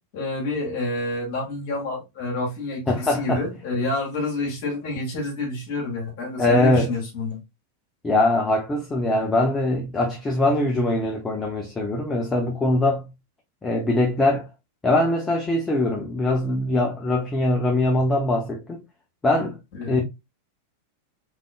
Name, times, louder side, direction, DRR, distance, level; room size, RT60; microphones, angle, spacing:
voice 1, 0.1-7.4 19.8-20.0, left 2 dB, 50° left, 1.9 m, -28 dB
voice 2, 2.9-3.5 6.4-6.9 8.0-13.1 13.6-14.5 14.8-18.8 19.2-19.6 19.9-20.0, left 2 dB, 15° left, 0.7 m, -22 dB
3.6 x 3.5 x 2.2 m
figure-of-eight pair, 90°, 0 cm